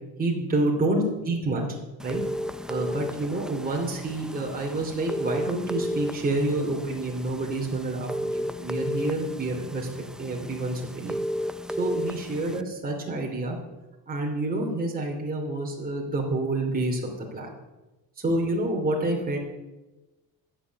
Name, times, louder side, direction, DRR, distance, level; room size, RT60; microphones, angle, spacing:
voice 1, 0.2-1.7 2.0-2.2 2.7-9.9 10.2-11.1 11.8-13.6 14.1-17.5 18.2-19.4, right 2 dB, 25° right, -1 dB, 2.9 m, -28 dB
sound 1, 2.0-12.6, equal, ahead, 0.5 m, -34 dB
12.5 x 7.1 x 8.2 m, 1.1 s
cardioid pair, 90°, 37 cm